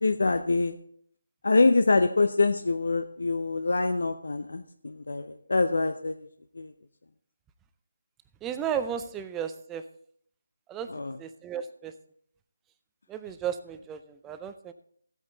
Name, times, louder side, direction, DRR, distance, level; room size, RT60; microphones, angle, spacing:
voice 1, 0.0-0.8 1.4-6.3 6.5-6.7 10.9-11.2, left 3 dB, 65° left, 8 dB, 0.7 m, -25 dB
voice 2, 8.4-9.8 10.7-10.9 11.2-11.9 13.1-14.7, right 8 dB, 10° right, 10 dB, 0.4 m, -34 dB
14.0 x 8.4 x 3.9 m, 0.63 s
figure-of-eight pair, 170°, 0 cm